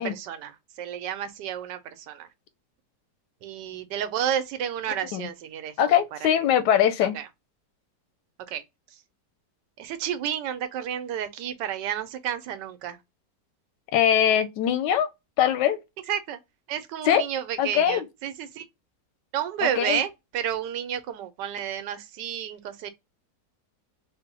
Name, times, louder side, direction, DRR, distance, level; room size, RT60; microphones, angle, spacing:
voice 1, 0.0-2.3 3.4-6.3 7.1-7.3 8.5-8.6 9.8-13.0 16.1-16.4 16.7-18.6 19.3-22.9, right 9 dB, 90° right, 1.3 m, -31 dB
voice 2, 5.8-7.2 13.9-15.1 15.4-15.8 17.1-17.2 17.6-18.0 19.6-20.0, left 9 dB, 85° left, 1.2 m, -22 dB
3.7 x 2.1 x 4.0 m
omnidirectional pair, 1.8 m